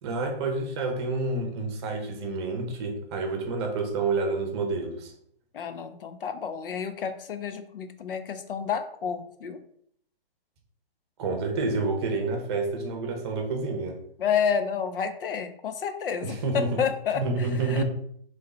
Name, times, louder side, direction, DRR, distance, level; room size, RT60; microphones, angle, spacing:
voice 1, 0.0-5.1 11.2-14.0 16.2-16.8 17.1-17.8, right 3 dB, 25° right, 3 dB, 0.9 m, -29 dB
voice 2, 5.5-9.6 14.2-17.8, left 7 dB, 65° left, 9 dB, 0.6 m, -30 dB
3.8 x 3.2 x 4.1 m, 0.66 s
hypercardioid pair, 150°, 30 cm